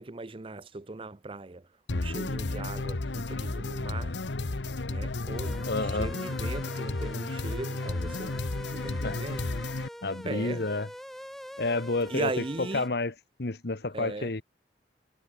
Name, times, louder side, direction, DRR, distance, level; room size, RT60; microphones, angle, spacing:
voice 1, 0.0-4.2 4.9-8.4 8.7-9.4 10.2-10.7 12.1-12.9 13.9-14.3, right 2 dB, 30° right, 0.6 m, -38 dB
sound 1, 1.9-9.9, left 2 dB, 80° left, 1.1 m, -33 dB
sound 2, 5.3-12.9, equal, ahead, 2.2 m, -44 dB
voice 2, 5.7-6.1 9.0-9.2 10.0-10.9 11.6-12.3 12.6-13.1 13.4-14.4, left 3 dB, 60° left, 1.1 m, -30 dB
head